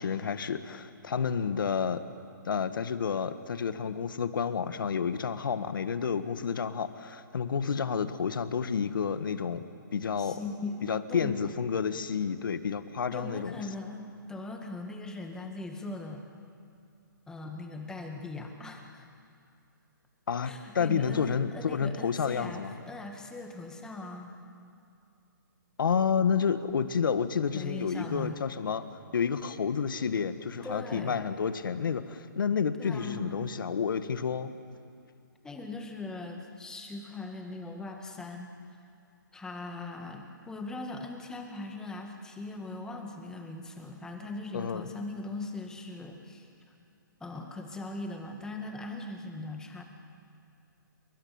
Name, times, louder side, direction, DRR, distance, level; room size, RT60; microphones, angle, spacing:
voice 1, 0.0-2.0 2.4-9.6 9.9-10.4 10.8-13.5 20.3-22.7 25.8-28.9 29.1-34.5 44.5-44.9, left 6 dB, 70° left, 11 dB, 1.7 m, -30 dB
voice 2, 10.2-11.5 13.1-16.2 17.3-19.1 20.4-24.3 27.5-28.4 30.6-31.2 32.8-33.5 35.4-38.8 39.3-46.5 47.2-49.8, left 2 dB, 5° left, 3 dB, 2.0 m, -40 dB
28.0 x 23.5 x 8.9 m, 2.5 s
hypercardioid pair, 155°, 11 cm